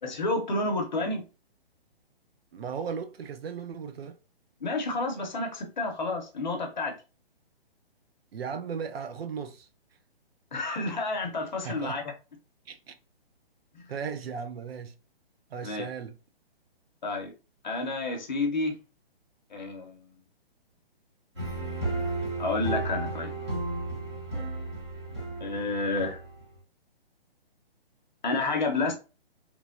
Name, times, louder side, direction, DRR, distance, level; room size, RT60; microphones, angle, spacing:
voice 1, 0.0-1.2 4.6-6.9 10.5-12.0 13.7-13.8 15.6-15.9 17.0-17.3 17.6-18.7 19.5-20.1 22.4-23.3 25.4-26.2 28.2-28.9, left 2 dB, 45° left, 0.7 m, -30 dB
voice 2, 2.5-4.2 8.3-9.7 11.6-12.0 12.7-13.0 13.9-14.9 15.5-16.1, right 6 dB, 75° right, 0.5 m, -36 dB
sound 1, 21.4-26.6, right 2 dB, 30° right, 0.9 m, -33 dB
3.1 x 2.2 x 2.4 m
hypercardioid pair, 180°, 31 cm